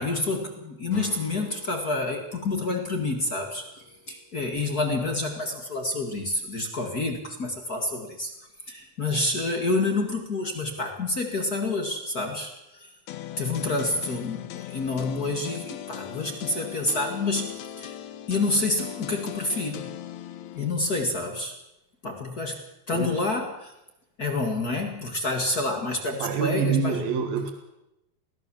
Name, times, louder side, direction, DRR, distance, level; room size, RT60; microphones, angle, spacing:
voice 1, 0.0-8.3 8.7-12.9 13.4-18.0 18.3-19.9 20.5-21.5 22.0-23.7 24.2-27.0, left 2 dB, 40° left, 4 dB, 1.3 m, -28 dB
Strum, 0.9-6.1, left 2 dB, 10° left, 2.6 m, -46 dB
sound 1, 13.1-20.7, left 12 dB, 75° left, 1.7 m, -39 dB
voice 2, 26.2-27.5, right 6 dB, 65° right, 5 dB, 3.3 m, -26 dB
23.0 x 17.0 x 7.1 m, 0.91 s
omnidirectional pair, 4.7 m